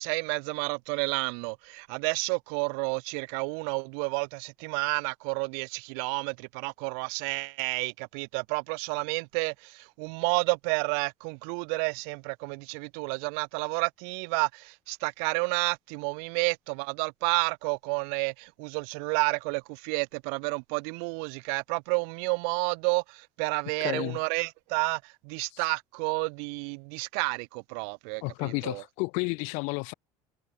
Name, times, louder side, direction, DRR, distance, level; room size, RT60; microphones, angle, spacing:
voice 1, 0.0-28.8, right 40 dB or more, 80° right, 2.7 m, -30 dB
voice 2, 23.8-24.2 25.5-25.6 28.2-29.9, left 32 dB, 70° left, 1.5 m, -31 dB
cardioid pair, 170°, 13 cm